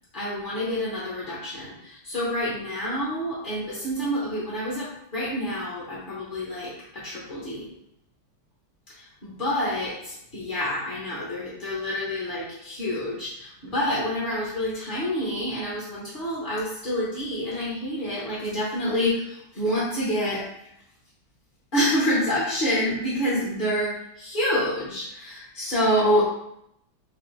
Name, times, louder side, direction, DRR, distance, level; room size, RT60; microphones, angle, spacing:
voice 1, 0.1-7.7 9.0-20.4 21.7-26.2, equal, 45° left, -8 dB, 0.6 m, -27 dB
4.0 x 2.6 x 3.2 m, 0.79 s
omnidirectional pair, 2.4 m